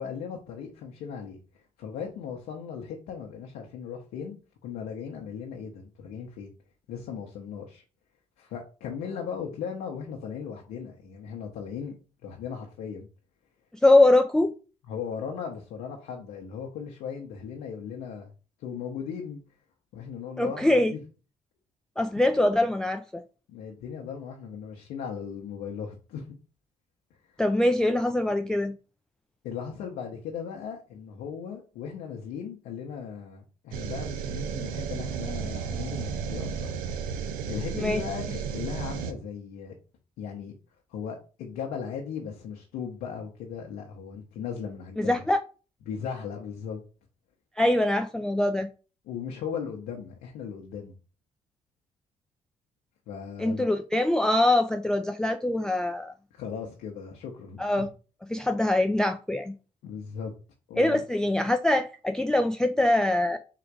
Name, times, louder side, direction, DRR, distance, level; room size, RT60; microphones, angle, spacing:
voice 1, 0.0-1.4 1.8-6.5 6.9-7.8 8.4-12.0 12.2-13.1 14.9-18.3 18.6-19.4 19.9-21.0 23.5-26.4 29.4-36.7 37.5-39.7 40.2-40.5 40.9-45.2 45.9-46.8 49.1-50.9 53.1-53.7 56.3-57.9 59.8-60.3 60.7-61.0, left 7 dB, 85° left, 0.8 m, -37 dB
voice 2, 13.8-14.5 20.4-20.9 22.0-23.2 27.4-28.8 37.7-38.0 45.0-45.4 47.6-48.7 53.4-56.1 57.6-57.9 58.3-59.5 60.8-63.4, left 1 dB, 5° left, 0.3 m, -23 dB
sound 1, 33.7-39.1, right 7 dB, 90° right, 0.5 m, -33 dB
3.8 x 2.5 x 4.5 m
supercardioid pair, 75°, 14 cm